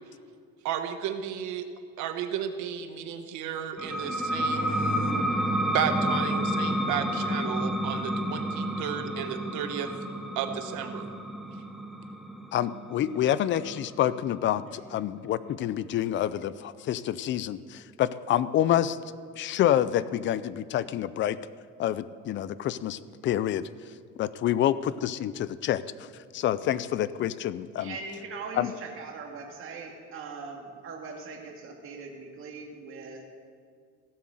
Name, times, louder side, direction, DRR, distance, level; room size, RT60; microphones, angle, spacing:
voice 1, 0.6-1.7 2.0-5.3 5.7-9.9 10.3-11.1, right 8 dB, 70° right, 8 dB, 1.2 m, -33 dB
sound 1, 3.8-15.0, equal, ahead, 0.7 m, -30 dB
voice 2, 12.5-19.0 19.4-21.4 21.8-23.7 24.2-25.8 26.3-27.9 28.6-28.7, left 11 dB, 40° left, 16 dB, 0.5 m, -27 dB
voice 3, 27.8-33.2, right 4 dB, 45° right, 1 dB, 2.3 m, -41 dB
16.5 x 7.6 x 7.7 m, 2.1 s
cardioid pair, 155°, 30 cm